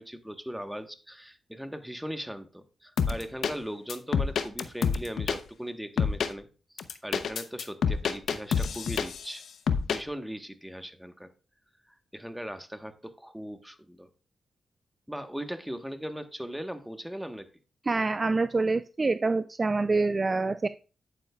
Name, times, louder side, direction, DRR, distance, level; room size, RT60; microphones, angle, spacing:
voice 1, 0.0-6.5 6.7-9.4 9.9-11.3 11.9-14.1 15.1-17.5, equal, 5° right, 7 dB, 1.2 m, -39 dB
sound 1, 3.0-3.5 3.9-5.4 6.0-6.3 6.8-9.3 9.7-10.0, left 6 dB, 75° left, 0.7 m, -27 dB
voice 2, 17.9-20.7, right 3 dB, 35° right, 12 dB, 0.4 m, -26 dB
10.5 x 9.1 x 2.3 m, 0.35 s
cardioid pair, 70°, 0 cm